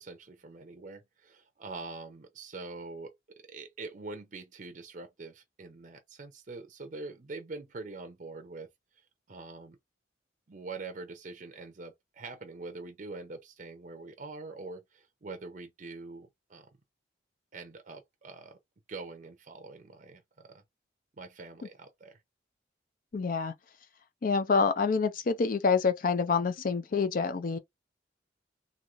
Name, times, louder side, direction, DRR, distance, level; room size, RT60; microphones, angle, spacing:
voice 1, 0.0-3.1 3.5-8.7 9.3-9.8 10.5-16.7 17.5-18.6 18.9-20.6 21.2-22.2, right 3 dB, 45° right, 0.6 m, -44 dB
voice 2, 23.1-23.5 24.2-27.6, left 5 dB, 50° left, 0.4 m, -27 dB
3.0 x 2.7 x 2.4 m
head